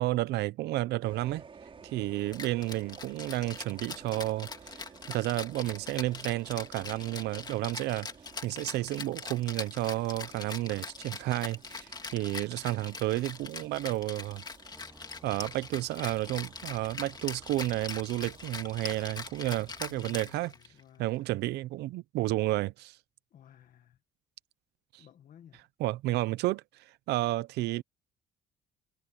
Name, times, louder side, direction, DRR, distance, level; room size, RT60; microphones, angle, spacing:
voice 1, 0.0-1.4 1.8-8.1 8.4-14.4 15.2-20.5 21.0-23.0 24.9-25.0 25.8-26.6 27.1-27.8, right 17 dB, 80° right, 0.8 m, -31 dB
sound 1, 1.0-20.2, right 5 dB, 30° right, 4.8 m, -54 dB
Rattle (instrument), 2.3-20.8, left 4 dB, 25° left, 2.4 m, -42 dB
sound 2, 14.7-20.8, equal, ahead, 5.9 m, -59 dB
voice 2, 19.8-21.4 23.3-24.0 25.0-25.6, left 10 dB, 55° left, 1.7 m, -56 dB
cardioid pair, 110°, 17 cm